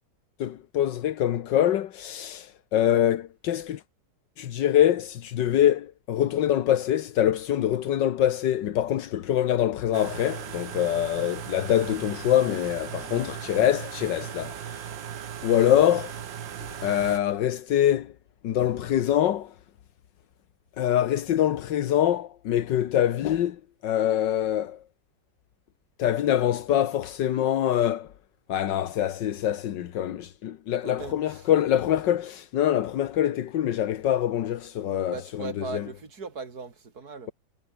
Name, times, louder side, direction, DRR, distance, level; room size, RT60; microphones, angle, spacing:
voice 1, 0.4-3.8 4.4-14.8 15.4-16.2 16.8-18.1 18.4-19.5 20.8-24.8 26.0-28.1 28.5-35.9, left 11 dB, 80° left, 1.7 m, -24 dB
sound 1, 9.9-17.2, right 9 dB, 90° right, 2.1 m, -37 dB
voice 2, 12.9-13.3 30.8-31.5 35.1-37.3, right 4 dB, 55° right, 3.0 m, -39 dB
omnidirectional pair, 1.9 m